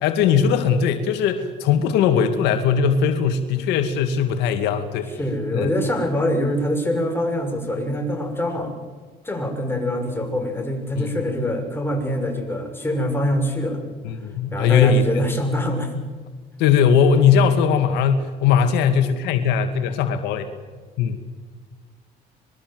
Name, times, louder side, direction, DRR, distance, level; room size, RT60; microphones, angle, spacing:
voice 1, 0.0-5.1 5.5-5.7 11.0-11.1 14.0-15.1 16.6-20.5 21.0-21.2, left 7 dB, 90° left, 8 dB, 2.3 m, -19 dB
voice 2, 5.2-8.7 9.2-13.8 14.5-15.9, left 1 dB, 15° left, 3 dB, 6.8 m, -24 dB
25.5 x 22.0 x 7.9 m, 1.4 s
cardioid pair, 110°, 17 cm